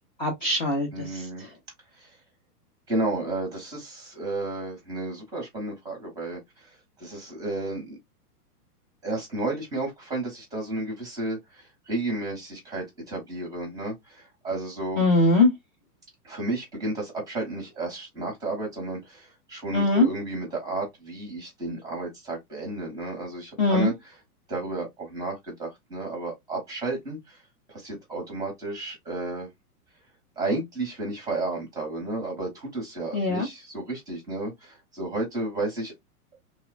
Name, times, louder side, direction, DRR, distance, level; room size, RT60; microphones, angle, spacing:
voice 1, 0.2-1.5 15.0-15.5 19.7-20.1 23.6-23.9 33.1-33.5, left 2 dB, 30° left, 0.4 m, -22 dB
voice 2, 0.9-1.4 1.9-2.1 2.9-8.0 9.0-15.0 16.2-23.9 24.5-27.4 27.7-29.5 30.4-35.9, right 2 dB, 10° right, 0.6 m, -32 dB
3.0 x 2.0 x 2.3 m
hypercardioid pair, 150°, 47 cm